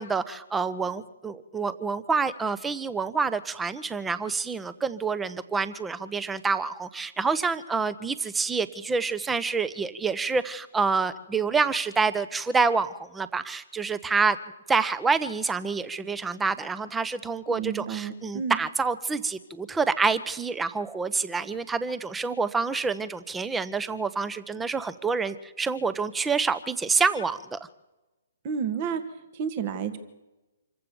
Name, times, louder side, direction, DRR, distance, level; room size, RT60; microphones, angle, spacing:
voice 1, 0.0-14.4 14.7-27.6, right 4 dB, 10° right, 15 dB, 1.1 m, -27 dB
voice 2, 17.5-18.6 28.4-29.0 29.3-30.0, right 7 dB, 40° right, 10 dB, 2.0 m, -30 dB
26.5 x 15.0 x 7.1 m, 1.0 s
figure-of-eight pair, 130°, 0 cm